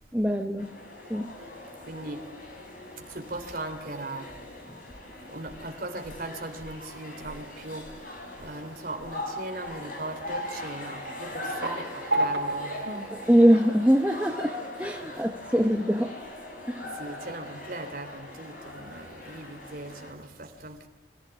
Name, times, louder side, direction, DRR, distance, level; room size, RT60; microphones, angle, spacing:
voice 1, 0.1-0.7 1.1-1.3 13.3-16.1 16.6-17.0, equal, 5° right, 1.0 m, -23 dB
sound 1, 0.6-20.1, left 1 dB, 45° left, 5.8 m, -41 dB
voice 2, 1.9-2.2 3.1-4.3 5.2-7.9 8.4-13.1 15.0-15.2 16.8-20.9, right 2 dB, 50° right, 3.2 m, -39 dB
sound 2, 11.0-14.4, right 2 dB, 70° right, 4.2 m, -32 dB
25.5 x 15.5 x 7.1 m
head